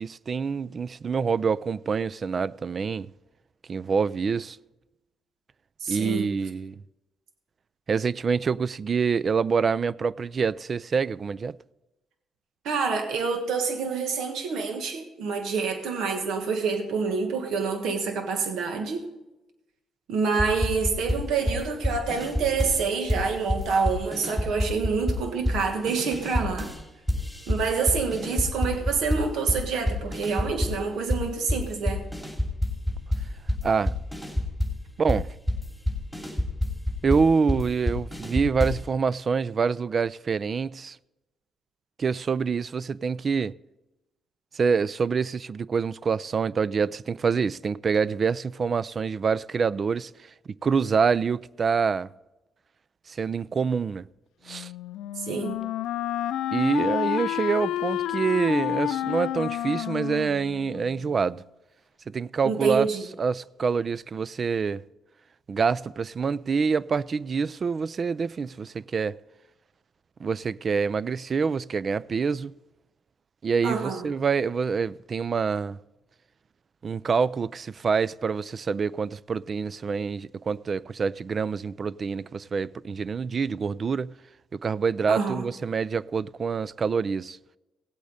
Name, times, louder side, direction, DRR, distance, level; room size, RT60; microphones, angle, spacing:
voice 1, 0.0-3.1 3.7-4.6 5.9-6.7 7.9-11.6 33.6-34.0 35.0-35.3 37.0-41.0 42.0-43.5 44.5-50.1 50.6-52.1 53.1-54.1 54.5-54.7 56.5-61.4 62.1-62.9 63.2-64.8 65.5-69.2 70.2-72.5 73.4-75.8 76.8-84.1 84.5-87.4, right 5 dB, 45° right, 0.3 m, -26 dB
voice 2, 5.8-6.3 12.6-19.0 20.1-26.7 27.5-32.0 55.2-55.6 62.4-63.0 73.6-74.0 85.1-85.5, right 5 dB, 80° right, 1.5 m, -27 dB
sound 1, 20.3-22.8 23.1-26.8 27.1-30.8 31.1-38.9, left 1 dB, 5° right, 2.8 m, -28 dB
Wind instrument woodwind instrument, 54.5-61.3, left 12 dB, 85° left, 0.4 m, -30 dB
17.0 x 8.4 x 4.1 m
cardioid pair, 90°, 0 cm